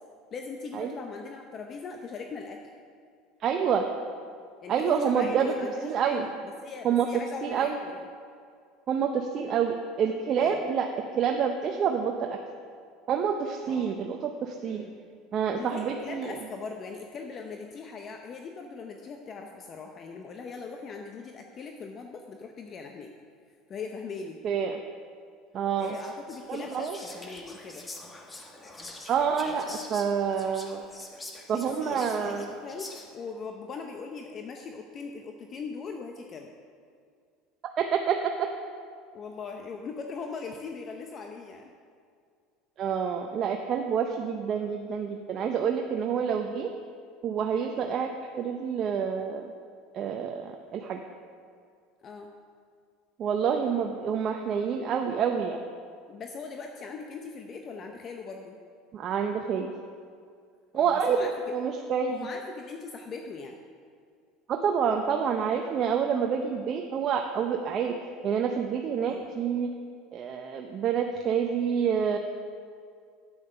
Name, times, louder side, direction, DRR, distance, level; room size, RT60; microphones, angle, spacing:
voice 1, 0.3-2.6 4.6-8.0 10.4-10.6 13.7-14.0 14.6-15.0 15.6-23.1 23.7-24.4 25.8-27.9 31.5-36.5 39.1-41.7 47.9-48.0 52.0-52.3 56.1-58.6 60.7-61.3 62.1-63.6 69.1-69.4, left 4 dB, 40° left, 3 dB, 0.7 m, -40 dB
voice 2, 3.4-3.9 4.7-5.5 5.8-6.3 6.8-7.8 8.9-10.9 11.2-12.4 13.1-14.8 15.3-16.4 24.4-24.8 25.5-26.0 26.5-27.0 29.1-30.8 31.5-32.5 37.6-38.5 42.8-46.7 47.2-48.1 48.4-49.5 49.9-51.0 53.2-55.6 58.9-59.7 60.7-62.2 64.5-67.9 68.2-69.7 70.1-72.2, right 7 dB, 45° right, 4 dB, 0.7 m, -28 dB
Whispering, 25.8-33.3, left 2 dB, 20° left, 1.3 m, -45 dB
8.8 x 8.6 x 5.5 m, 2.2 s
supercardioid pair, 100°, 0 cm